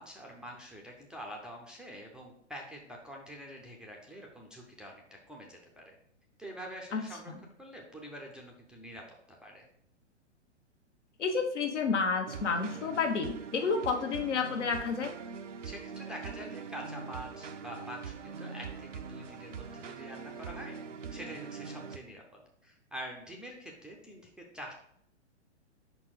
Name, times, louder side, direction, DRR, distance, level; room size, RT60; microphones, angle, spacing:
voice 1, 0.0-5.0 5.3-6.0 6.4-9.7 15.6-20.8 21.1-24.7, equal, ahead, -1 dB, 0.5 m, -46 dB
voice 2, 11.2-15.1, left 5 dB, 75° left, 4 dB, 1.2 m, -30 dB
sound 1, 12.3-22.0, right 5 dB, 85° right, 0.7 m, -43 dB
5.2 x 4.4 x 4.8 m, 0.69 s
hypercardioid pair, 120°, 36 cm